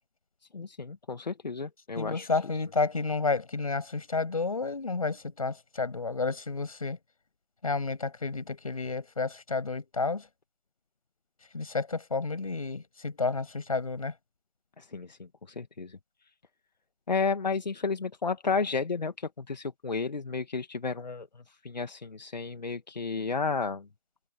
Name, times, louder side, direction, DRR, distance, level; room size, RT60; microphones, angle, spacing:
voice 1, 0.5-2.3 14.8-16.0 17.1-23.9, left 4 dB, 90° left, 1.7 m, -32 dB
voice 2, 2.0-7.0 7.6-10.3 11.5-14.1, left 4 dB, 55° left, 7.6 m, -31 dB
hypercardioid pair, 180°, 21 cm